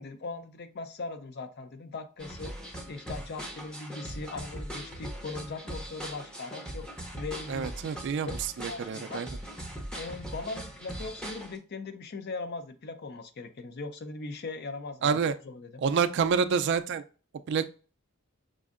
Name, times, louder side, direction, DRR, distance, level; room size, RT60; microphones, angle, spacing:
voice 1, 0.0-2.5 2.9-6.9 7.2-8.4 8.7-9.2 10.0-15.8, left 3 dB, 45° left, 9 dB, 0.5 m, -40 dB
sound 1, 2.2-11.6, right 1 dB, 5° left, 0.6 m, -40 dB
voice 2, 7.5-8.3 8.6-9.3 15.0-15.3 15.8-17.0 17.5-17.7, right 6 dB, 55° right, 11 dB, 0.3 m, -27 dB
6.1 x 2.6 x 2.4 m, 0.36 s
head